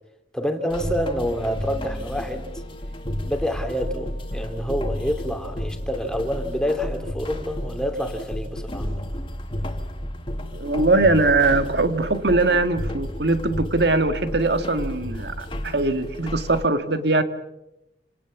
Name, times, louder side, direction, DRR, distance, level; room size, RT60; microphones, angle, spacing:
voice 1, 0.3-2.5 3.2-9.0, equal, 5° left, 5 dB, 2.7 m, -27 dB
sound 1, 0.7-16.6, equal, 30° left, 2.4 m, -32 dB
voice 2, 10.5-17.2, right 2 dB, 65° right, 8 dB, 1.9 m, -21 dB
28.0 x 18.5 x 7.3 m, 0.88 s
head